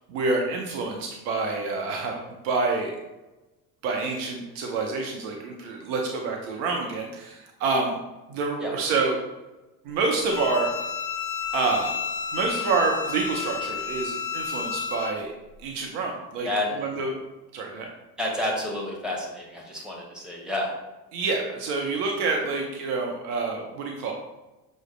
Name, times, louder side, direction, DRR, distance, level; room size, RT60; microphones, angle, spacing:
voice 1, 0.1-2.9 3.8-8.0 8.3-9.2 9.8-10.7 11.5-11.9 12.3-15.3 15.6-16.5 16.8-17.2 17.5-17.9 21.1-24.1, right 3 dB, 50° right, 1 dB, 0.7 m, -27 dB
Bowed string instrument, 10.2-15.1, left 7 dB, 30° left, 0.4 m, -31 dB
voice 2, 18.2-20.7, left 1 dB, ahead, -2 dB, 1.1 m, -29 dB
6.1 x 2.1 x 3.1 m, 1.1 s
figure-of-eight pair, 60°, 50 cm